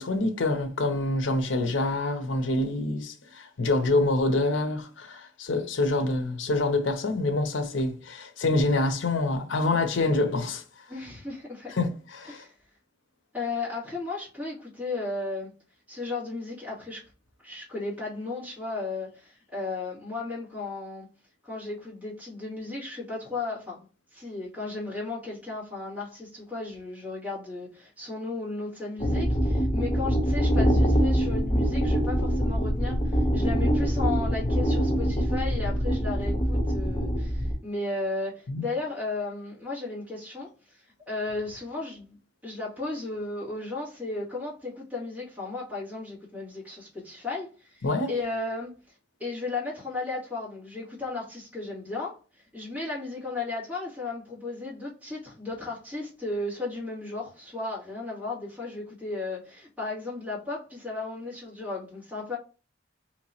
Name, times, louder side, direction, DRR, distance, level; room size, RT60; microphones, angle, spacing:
voice 1, 0.0-10.6 11.7-12.4 38.5-38.6 47.8-48.1, left 2 dB, 85° left, 0.7 m, -26 dB
voice 2, 10.9-11.7 12.3-12.5 13.3-15.5 15.9-17.0 17.4-21.1 21.4-23.9 24.1-42.2 42.4-48.7 49.2-52.2 52.5-62.4, left 3 dB, 10° right, 2.2 m, -35 dB
sound 1, 29.0-37.5, equal, 20° left, 0.8 m, -24 dB
4.5 x 2.9 x 2.8 m
head